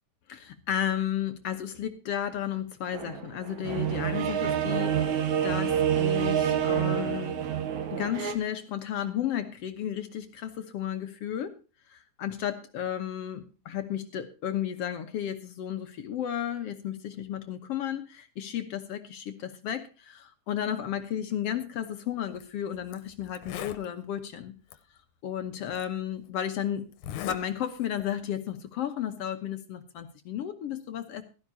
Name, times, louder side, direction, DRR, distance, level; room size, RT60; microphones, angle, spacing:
voice 1, 0.3-7.5 7.9-11.6 11.9-24.5 25.2-26.9 27.2-31.2, left 10 dB, 65° left, 8 dB, 1.8 m, -33 dB
sound 1, 2.9-8.3, right 9 dB, 70° right, 2.7 m, -27 dB
Zipper (clothing), 22.3-22.4 22.9-23.0 23.3-23.9 24.7-24.8 25.8-25.9 26.9-27.4 27.8-28.1, left 10 dB, 85° left, 2.3 m, -39 dB
16.5 x 13.0 x 2.8 m, 0.33 s
omnidirectional pair, 3.5 m